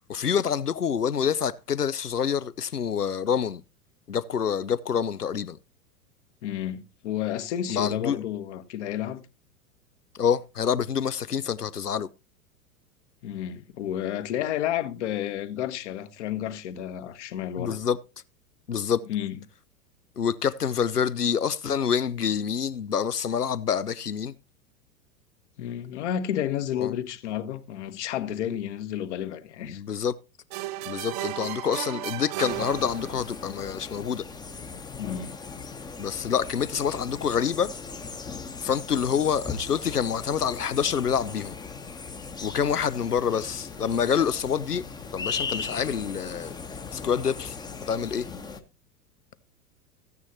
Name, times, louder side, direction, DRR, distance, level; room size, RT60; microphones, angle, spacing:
voice 1, 0.1-3.6 4.1-5.6 7.7-8.2 10.1-12.1 17.6-18.0 18.7-19.0 20.2-24.3 26.7-26.9 29.6-30.1 30.9-34.2 36.0-37.7 38.6-41.6 42.4-44.8 45.1-46.5 46.9-47.6 47.9-48.3, left 7 dB, 85° left, 0.7 m, -27 dB
voice 2, 6.4-9.2 13.2-17.8 19.1-19.4 25.6-29.8 35.0-35.4, left 10 dB, 50° left, 1.3 m, -31 dB
sound 1, 30.5-33.5, right 16 dB, 30° right, 0.5 m, -34 dB
sound 2, 32.5-48.6, left 5 dB, 10° left, 0.9 m, -38 dB
15.0 x 9.5 x 2.8 m
figure-of-eight pair, 95°, 46 cm